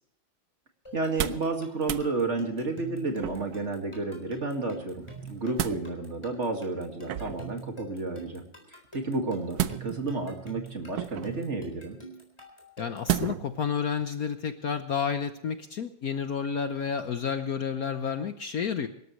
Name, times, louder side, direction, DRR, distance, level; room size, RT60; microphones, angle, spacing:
sound 1, 0.9-13.2, right 3 dB, 15° left, 3.9 m, -45 dB
voice 1, 0.9-8.4 8.7-12.0, right 3 dB, 35° right, 4 dB, 2.2 m, -31 dB
sound 2, 1.0-1.5 1.8-2.1 3.2-3.7 5.1-5.8 7.0-7.5 9.5-10.2 10.9-11.4 13.1-13.5 14.0-14.1, right 11 dB, 65° right, 1.1 m, -32 dB
voice 2, 12.8-18.9, left 6 dB, 60° left, 9 dB, 1.2 m, -30 dB
24.5 x 13.0 x 3.2 m, 0.77 s
omnidirectional pair, 2.1 m